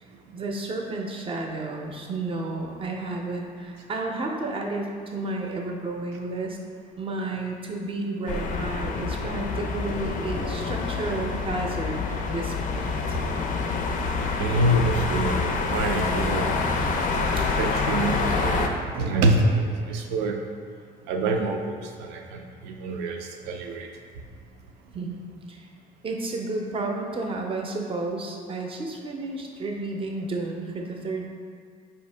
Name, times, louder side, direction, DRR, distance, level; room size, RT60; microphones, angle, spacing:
voice 1, 0.3-6.6 7.0-13.2 17.3-17.5 24.9-25.6 26.0-31.3, right 2 dB, 30° right, 1 dB, 0.5 m, -32 dB
sound 1, 8.3-18.7, left 4 dB, 50° left, 0.4 m, -27 dB
voice 2, 14.4-15.4 15.7-16.6 17.6-18.7 18.9-20.4 21.1-23.9, right 2 dB, 90° right, 3 dB, 0.5 m, -26 dB
4.5 x 2.7 x 3.2 m, 2.1 s
cardioid pair, 110°, 17 cm